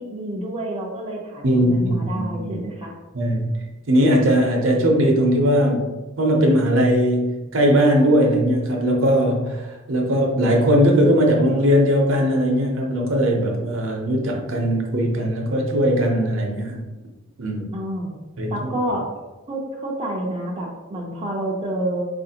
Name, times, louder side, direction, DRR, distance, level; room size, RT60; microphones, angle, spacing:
voice 1, 0.0-2.9 17.7-18.2 18.5-19.1 19.5-22.1, right 1 dB, 25° right, -3 dB, 0.4 m, -28 dB
voice 2, 1.4-2.6 3.1-3.6 3.9-5.9 6.2-16.8 17.4-17.7 18.4-18.5, equal, 65° right, 1 dB, 0.7 m, -19 dB
4.0 x 2.5 x 2.8 m, 1.1 s
head